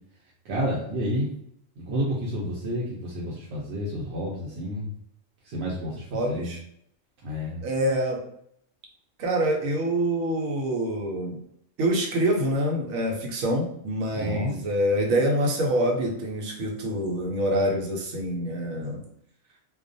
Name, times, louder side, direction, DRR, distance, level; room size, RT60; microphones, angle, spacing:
voice 1, 0.4-1.3 1.8-4.9 5.4-6.5 7.2-7.7 14.1-14.5, equal, 60° right, -5 dB, 0.8 m, -30 dB
voice 2, 6.1-6.6 7.6-8.3 9.2-11.4 11.8-19.0, right 1 dB, 85° right, 1 dB, 1.0 m, -26 dB
2.3 x 2.2 x 2.5 m, 0.72 s
omnidirectional pair, 1.4 m